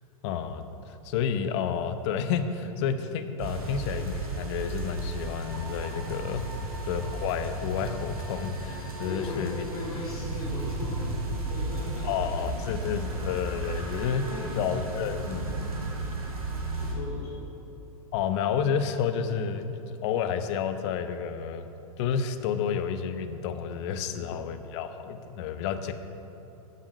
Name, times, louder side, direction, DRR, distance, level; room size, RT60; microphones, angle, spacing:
voice 1, 0.2-6.4 6.9-9.7 12.0-15.5 18.1-21.6 22.0-25.9, left 7 dB, 50° left, 9 dB, 0.8 m, -30 dB
sound 1, 3.4-16.9, right 2 dB, 75° right, 2.2 m, -34 dB
voice 2, 9.0-11.1 11.5-12.3 12.9-13.1 13.6-13.7 14.3-14.6 15.4-15.7 16.8-17.5 24.1-24.4, left 2 dB, 75° left, -4 dB, 2.5 m, -38 dB
11.0 x 7.4 x 6.4 m, 2.9 s
figure-of-eight pair, 95°, 19 cm